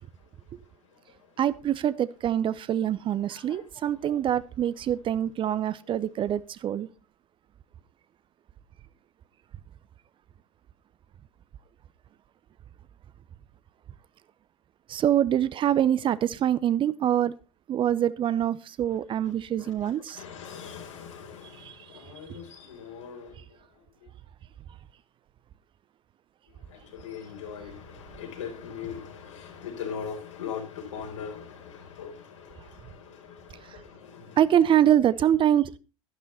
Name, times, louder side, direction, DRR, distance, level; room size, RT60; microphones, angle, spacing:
voice 1, 1.4-6.9 14.9-17.3 17.7-20.2 21.6-21.8 33.7-33.8 34.4-35.8, right 10 dB, 30° right, 0.7 m, -25 dB
voice 2, 3.3-3.9 19.6-23.4 26.7-34.4, left 7 dB, 70° left, 4.3 m, -41 dB
12.5 x 11.5 x 4.0 m
figure-of-eight pair, 75°, 17 cm